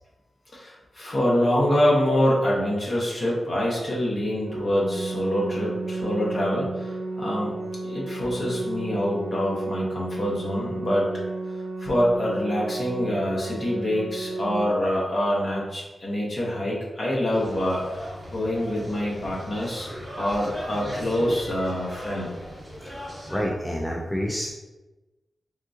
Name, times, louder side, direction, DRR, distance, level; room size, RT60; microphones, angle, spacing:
voice 1, 0.5-7.6 7.8-11.1 11.8-17.8 18.3-19.9 20.2-22.3, equal, 40° left, -5 dB, 1.0 m, -25 dB
Organ, 4.5-15.5, right 2 dB, 80° right, 0.4 m, -33 dB
sound 1, 17.3-23.4, equal, 15° right, 1.2 m, -38 dB
voice 2, 22.8-24.5, equal, 5° left, -2 dB, 0.3 m, -29 dB
3.6 x 2.6 x 2.4 m, 1.1 s
wide cardioid pair, 125°, 0 cm